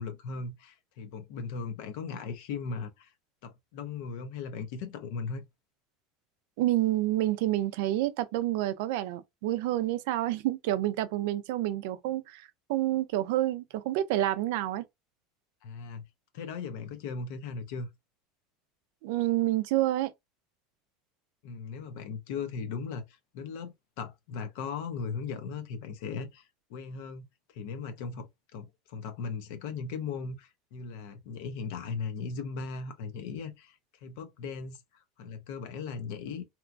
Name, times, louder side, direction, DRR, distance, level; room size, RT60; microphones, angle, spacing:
voice 1, 0.0-3.1 3.4-5.5 15.6-16.0 16.3-17.9 21.4-27.3 27.5-34.8 35.2-36.4, left 5 dB, 65° left, 0.6 m, -38 dB
voice 2, 6.6-14.8 19.0-20.1, right 14 dB, 70° right, 0.3 m, -28 dB
2.9 x 2.2 x 2.5 m
supercardioid pair, 155°, 0 cm